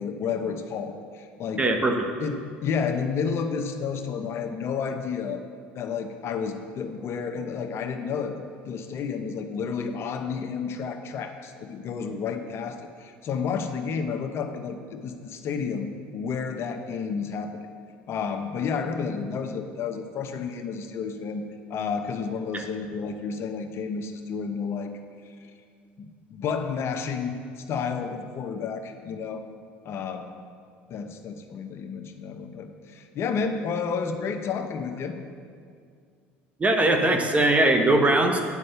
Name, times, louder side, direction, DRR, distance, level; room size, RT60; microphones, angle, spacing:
voice 1, 0.0-1.7 2.2-5.4 5.7-8.4 8.7-17.7 18.1-21.4 21.7-24.9 25.3-25.5 26.0-29.4 29.8-30.3 30.9-35.1, left 6 dB, 50° left, 6 dB, 0.8 m, -31 dB
voice 2, 1.6-2.0 22.5-22.6 36.6-38.4, right 2 dB, 25° right, 5 dB, 1.1 m, -20 dB
9.7 x 5.4 x 6.6 m, 2.2 s
supercardioid pair, 85°, 5 cm